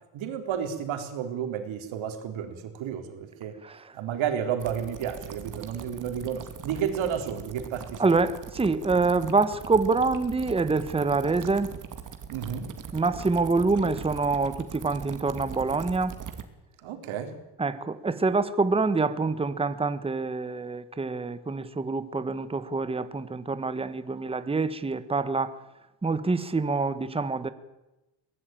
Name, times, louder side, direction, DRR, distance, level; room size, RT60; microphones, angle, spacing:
voice 1, 0.1-3.6 3.9-8.1 12.3-12.7 16.8-17.4, right 8 dB, 70° right, 6 dB, 3.8 m, -32 dB
sound 1, 4.6-16.4, right 7 dB, 40° right, 2.5 m, -41 dB
voice 2, 8.0-11.7 12.9-16.1 17.6-25.5 26.0-27.5, right 3 dB, 10° right, 13 dB, 1.1 m, -26 dB
23.0 x 18.5 x 9.1 m, 0.98 s
cardioid pair, 135°, 48 cm